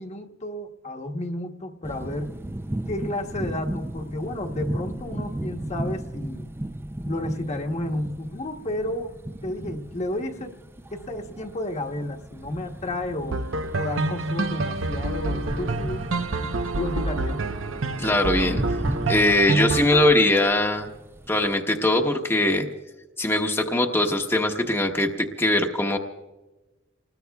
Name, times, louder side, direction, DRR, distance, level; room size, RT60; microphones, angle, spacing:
voice 1, 0.0-2.3 2.9-6.5 7.0-9.1 9.4-10.5 10.9-13.4 13.8-16.1 16.7-17.4, left 1 dB, 35° left, 3 dB, 1.1 m, -31 dB
sound 1, 1.8-21.6, right 1 dB, 10° right, 0.4 m, -36 dB
sound 2, 13.3-20.1, right 2 dB, 80° right, 0.8 m, -27 dB
voice 2, 18.0-18.6 19.1-20.9 21.3-22.7 23.2-26.0, left 1 dB, 10° left, 1 dB, 1.0 m, -21 dB
29.0 x 20.0 x 2.3 m, 1.1 s
head